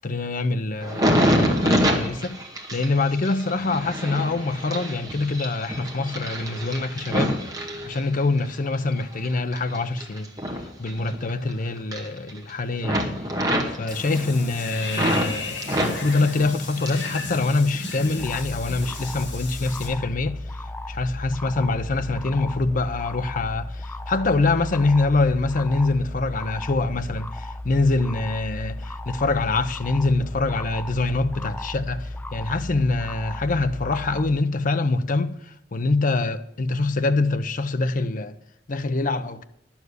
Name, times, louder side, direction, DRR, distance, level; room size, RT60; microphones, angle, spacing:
voice 1, 0.0-2.4 2.7-7.4 7.8-10.3 10.5-13.1 13.7-38.3 38.7-39.4, left 3 dB, 45° left, 0.7 m, -25 dB
sound 1, 0.8-8.5 8.9-11.5 11.8-12.5 12.8-15.3 15.6-17.2 17.5-18.2 18.7-19.0, equal, 20° right, 1.8 m, -27 dB
Water / Bathtub (filling or washing), 13.9-19.9, left 3 dB, 90° left, 4.4 m, -35 dB
sound 2, 18.2-34.4, left 1 dB, 10° left, 0.4 m, -35 dB
11.0 x 7.2 x 8.1 m
head